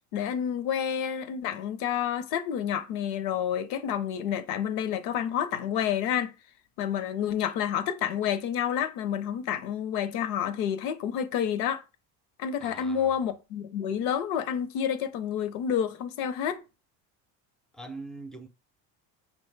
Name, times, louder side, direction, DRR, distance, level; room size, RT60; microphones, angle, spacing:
voice 1, 0.1-6.4 6.8-11.8 12.4-16.6, left 9 dB, 75° left, 0.6 m, -29 dB
voice 2, 12.6-13.2 17.7-18.5, right 2 dB, ahead, 0.4 m, -42 dB
5.2 x 2.2 x 3.2 m
supercardioid pair, 95°, 40 cm